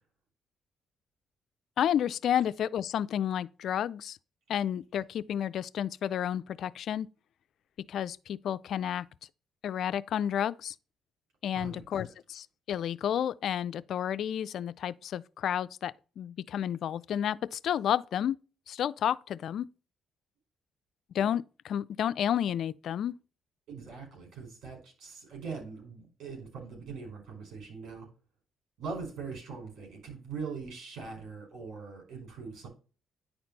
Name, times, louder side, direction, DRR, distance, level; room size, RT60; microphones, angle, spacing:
voice 1, 1.8-4.2 4.5-7.1 7.9-9.0 9.6-10.7 11.4-18.4 18.7-19.7 21.1-23.2, left 10 dB, 70° left, 0.4 m, -31 dB
voice 2, 11.5-12.1 23.7-28.1 28.8-32.7, right 5 dB, 75° right, 4.9 m, -42 dB
10.0 x 4.3 x 4.0 m
cardioid pair, 90°, 0 cm